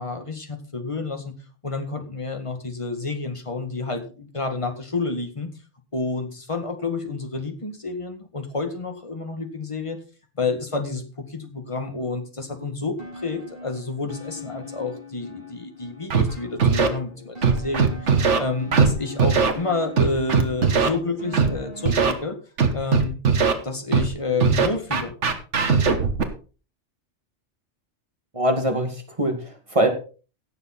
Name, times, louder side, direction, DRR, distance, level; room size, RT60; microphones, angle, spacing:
voice 1, 0.0-1.3 1.6-5.5 5.9-10.0 10.4-22.4 22.7-23.2 23.6-25.1, left 3 dB, 25° left, 5 dB, 1.9 m, -29 dB
sound 1, 13.0-21.9, left 3 dB, 55° right, 5.3 m, -41 dB
Scratching (performance technique), 16.1-16.2 16.6-16.9 17.4-18.4 18.7-18.9 19.2-19.5 20.0-20.9 21.3-21.5 21.9-22.1 22.6-23.5 23.9-24.1 24.4-26.2, right 5 dB, 85° right, 1.7 m, -19 dB
voice 2, 28.3-29.9, right 1 dB, 30° right, 4 dB, 2.2 m, -23 dB
16.5 x 7.1 x 4.2 m, 0.36 s
omnidirectional pair, 1.2 m